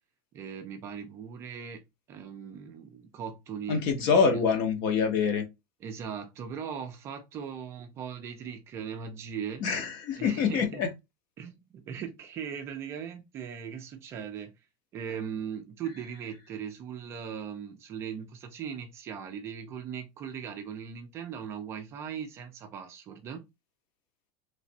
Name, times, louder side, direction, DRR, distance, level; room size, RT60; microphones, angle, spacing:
voice 1, 0.3-4.4 5.8-9.7 10.2-10.8 11.4-14.5 14.9-23.4, right 7 dB, 25° right, 0.4 m, -39 dB
voice 2, 3.7-5.5 9.6-10.9, left 6 dB, 40° left, 0.8 m, -25 dB
3.2 x 3.1 x 2.7 m
supercardioid pair, 175°, 11 cm